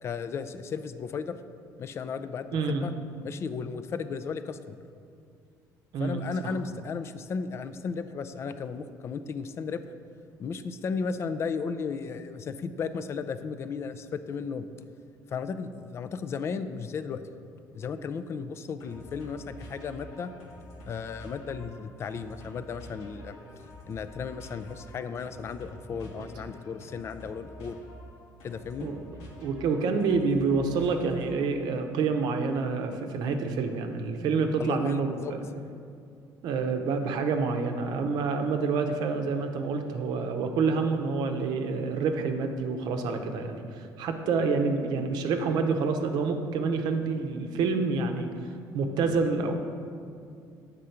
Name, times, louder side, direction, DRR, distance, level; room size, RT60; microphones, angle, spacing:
voice 1, 0.0-1.4 1.8-2.9 3.2-4.8 6.0-9.8 10.4-14.7 15.3-17.3 17.7-20.3 20.8-23.4 23.9-27.8 28.4-28.9 34.6-35.3, left 5 dB, 35° left, 11 dB, 0.3 m, -35 dB
voice 2, 2.5-2.8 5.9-6.2 26.2-26.3 28.8-29.0 29.4-35.4 36.4-48.3 48.7-49.5, right 4 dB, 70° right, 5 dB, 0.7 m, -28 dB
sound 1, 18.8-31.6, equal, 90° left, 1.4 m, -48 dB
7.9 x 3.7 x 5.6 m, 2.4 s
cardioid pair, 135°, 7 cm